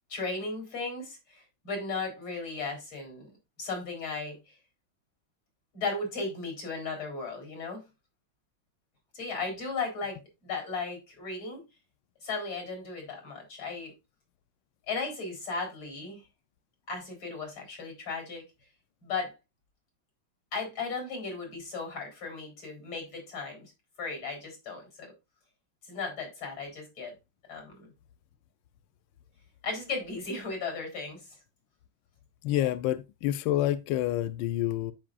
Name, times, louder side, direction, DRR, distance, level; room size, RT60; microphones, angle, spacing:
voice 1, 0.1-3.3 3.6-4.6 5.7-7.9 9.1-11.6 12.2-13.9 14.9-16.2 16.9-18.4 19.0-19.3 20.5-23.6 24.0-25.1 25.8-27.1 27.5-27.9 29.6-31.3 32.5-32.7, left 4 dB, 90° left, 4.8 m, -36 dB
voice 2, 32.4-34.9, left 13 dB, 75° left, 1.2 m, -28 dB
13.5 x 5.3 x 2.5 m
omnidirectional pair, 2.2 m